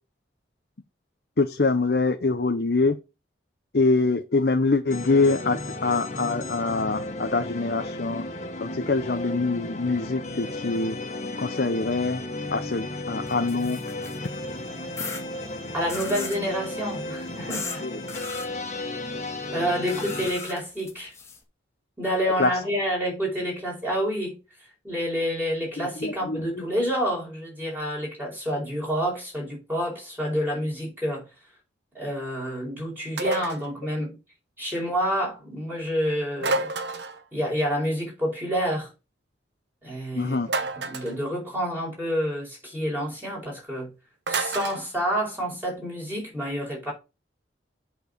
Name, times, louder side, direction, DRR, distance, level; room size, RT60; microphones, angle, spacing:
voice 1, 1.4-3.0 3.7-8.2 8.6-11.0 11.4-12.2 12.5-13.8 17.8-18.0 22.4-22.5 25.8-26.6 40.1-40.5, left 3 dB, 60° left, 0.7 m, -24 dB
sound 1, 4.9-20.3, left 2 dB, 40° left, 1.8 m, -34 dB
sound 2, 13.3-14.3 15.0-15.2 15.9-16.4 17.5-17.8 18.1-18.5 19.9-21.4, left 4 dB, 15° left, 2.0 m, -36 dB
voice 2, 15.7-17.8 19.5-21.1 22.0-24.4 24.8-31.2 31.9-34.1 34.6-36.7 37.3-38.9 39.8-43.9 44.3-46.9, equal, 10° right, 4.9 m, -28 dB
sound 3, 33.2-33.7 36.4-37.2 40.5-41.2 44.3-44.8, right 2 dB, 75° right, 1.2 m, -28 dB
8.1 x 4.7 x 6.6 m
head